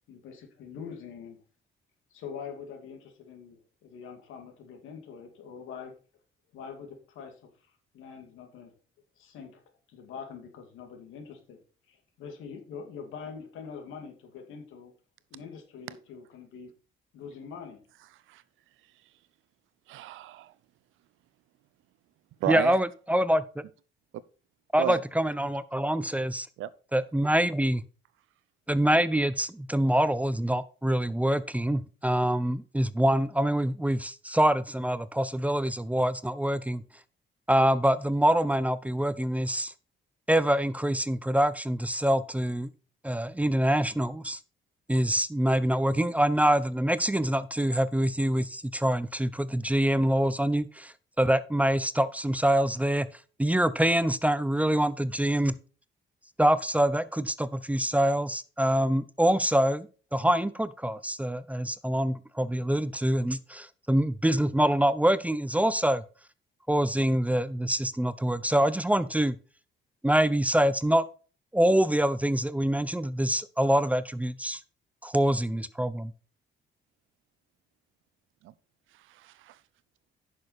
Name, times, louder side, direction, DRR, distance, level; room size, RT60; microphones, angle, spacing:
voice 1, 0.1-1.4 2.1-5.9 6.5-7.4 7.9-8.7 9.2-9.6 9.9-11.6 11.9-14.9 15.3-16.7 17.1-17.8, left 6 dB, 90° left, 2.5 m, -44 dB
voice 2, 19.9-20.5 22.4-22.8 24.8-25.0 26.6-26.7 78.4-78.5 79.1-79.6, right 13 dB, 85° right, 0.7 m, -32 dB
voice 3, 22.5-23.6 24.7-26.5 26.9-27.8 28.7-36.8 37.5-39.7 40.3-42.7 43.0-44.4 44.9-50.9 51.2-53.1 53.4-55.5 56.4-59.9 60.1-66.0 66.7-69.3 70.0-71.0 71.5-74.6 75.0-76.1, right 1 dB, 5° right, 0.6 m, -25 dB
9.9 x 6.5 x 4.3 m
cardioid pair, 90°, 20 cm